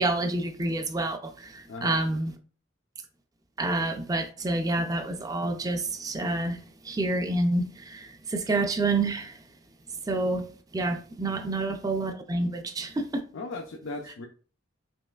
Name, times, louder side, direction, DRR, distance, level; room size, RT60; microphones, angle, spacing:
voice 1, 0.0-2.3 3.6-6.6 6.8-9.3 10.1-10.5 10.7-13.2, right 2 dB, 20° right, 0.4 m, -28 dB
voice 2, 13.3-14.3, left 2 dB, 70° left, 0.5 m, -37 dB
5.2 x 3.1 x 2.3 m
head